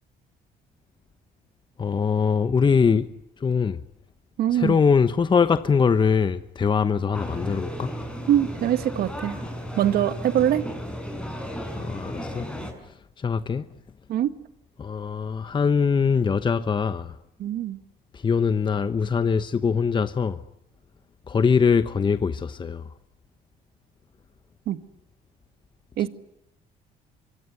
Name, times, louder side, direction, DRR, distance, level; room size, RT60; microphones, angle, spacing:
voice 1, 1.8-3.1 3.4-3.8 4.5-7.9 11.8-12.5 13.2-13.7 14.8-17.1 18.1-20.4 21.3-22.8, left 6 dB, 30° left, 1.0 m, -22 dB
voice 2, 4.4-4.8 8.3-9.4 9.8-10.7 14.1-14.3 17.4-17.8 24.7-24.8 26.0-26.1, right 11 dB, 70° right, 1.9 m, -23 dB
sound 1, 7.1-12.7, equal, 5° left, 6.5 m, -34 dB
24.5 x 24.5 x 9.6 m
cardioid pair, 110°, 17 cm